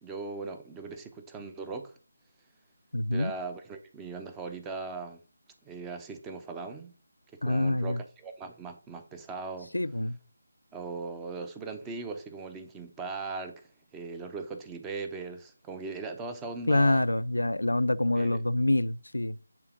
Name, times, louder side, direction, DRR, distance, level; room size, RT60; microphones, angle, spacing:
voice 1, 0.0-1.9 3.1-5.2 5.6-6.9 7.3-9.7 10.7-17.0 18.1-18.4, right 4 dB, 10° right, 0.7 m, -39 dB
voice 2, 2.9-3.3 7.4-8.0 9.7-10.2 16.7-19.4, left 1 dB, 80° left, 0.5 m, -26 dB
8.7 x 3.6 x 5.7 m
figure-of-eight pair, 160°, 0 cm